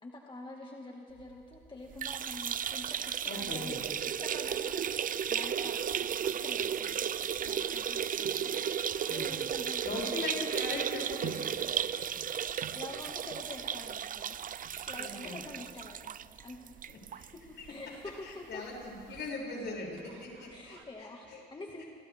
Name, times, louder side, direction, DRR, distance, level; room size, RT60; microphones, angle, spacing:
voice 1, 0.0-3.8 4.1-8.7 9.1-10.1 12.7-16.8 17.3-18.6 20.5-21.8, left 2 dB, 25° left, -1 dB, 2.1 m, -47 dB
sound 1, 1.1-20.8, right 8 dB, 90° right, 1.8 m, -55 dB
sound 2, 1.9-17.3 17.7-17.8 18.1-18.2 19.2-19.3, right 8 dB, 45° right, 0.5 m, -34 dB
voice 2, 3.2-3.8 9.1-9.3 9.8-11.3 14.9-15.4 16.9-17.3 17.6-17.7 18.2-21.4 21.8-21.9, left 2 dB, 65° left, -2 dB, 7.3 m, -40 dB
29.5 x 25.5 x 3.7 m, 2.4 s
cardioid pair, 90°, 20 cm